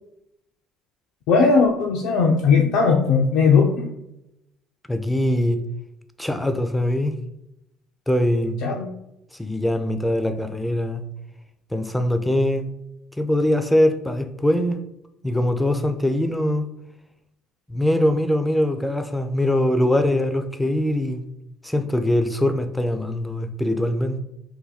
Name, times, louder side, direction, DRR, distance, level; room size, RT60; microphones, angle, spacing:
voice 1, 1.3-3.9 8.6-8.9, left 5 dB, 70° left, 0 dB, 0.4 m, -18 dB
voice 2, 4.9-5.6 6.2-7.1 8.1-8.6 9.4-11.0 11.7-12.7 13.2-14.8 15.2-16.7 17.7-21.2 21.6-24.2, left 1 dB, 5° left, 8 dB, 0.4 m, -22 dB
2.7 x 2.2 x 4.0 m, 0.85 s
hypercardioid pair, 70°, 0 cm